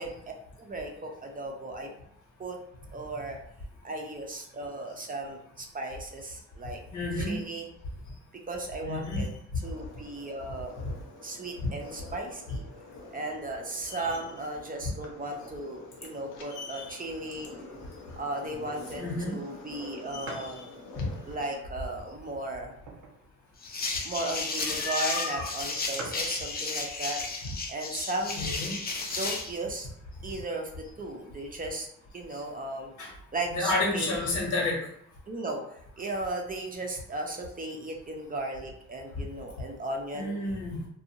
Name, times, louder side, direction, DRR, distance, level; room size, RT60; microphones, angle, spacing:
voice 1, 0.0-1.9 2.4-2.6 2.9-3.4 3.8-6.8 7.1-7.7 8.5-10.7 11.2-12.6 13.1-17.5 18.2-20.7 21.3-22.7 24.0-27.2 27.7-28.6 29.1-29.9 30.2-31.9 32.1-32.9 33.3-34.1 35.3-40.3, right 2 dB, 30° right, 1 dB, 0.5 m, -36 dB
voice 2, 6.9-7.4 8.8-9.3 13.9-14.0 16.5-16.9 19.0-19.3 20.1-20.5 21.0-21.1 24.6-25.5 28.4-28.7 30.3-30.4 33.0-33.1 33.5-34.8 40.1-40.8, left 2 dB, 70° left, -2 dB, 1.2 m, -31 dB
sound 1, 9.6-21.6, left 2 dB, 90° left, 0.7 m, -48 dB
sound 2, 20.2-20.6 21.2-21.3 22.1-23.3 23.7-23.8 23.9-24.2 25.0-25.1 25.3-25.4 25.6-25.7 25.9-26.4 27.2-27.6 28.1-28.2 28.4-29.2, right 3 dB, 85° right, 0.7 m, -43 dB
sound 3, 23.6-29.5, left 3 dB, 30° left, 0.6 m, -33 dB
2.5 x 2.3 x 2.8 m, 0.73 s
cardioid pair, 90°, 30 cm